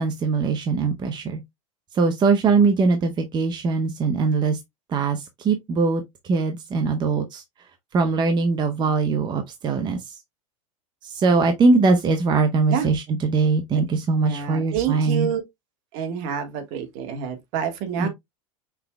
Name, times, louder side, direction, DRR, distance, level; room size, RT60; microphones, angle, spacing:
voice 1, 0.0-1.4 1.9-4.6 4.9-7.4 7.9-10.1 11.0-15.3 18.0-18.1, right 4 dB, 25° right, 0.7 m, -21 dB
voice 2, 14.2-15.4 15.9-18.1, right 8 dB, 55° right, 1.5 m, -28 dB
5.6 x 3.7 x 2.2 m
supercardioid pair, 115°, 17 cm